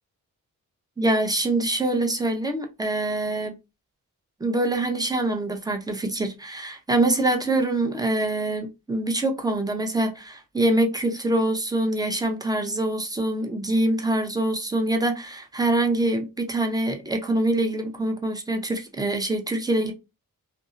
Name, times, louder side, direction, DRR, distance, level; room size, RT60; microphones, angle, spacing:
voice 1, 1.0-3.5 4.4-19.9, right 2 dB, 10° right, 0.7 m, -24 dB
2.6 x 2.0 x 2.5 m
cardioid pair, 65°, 34 cm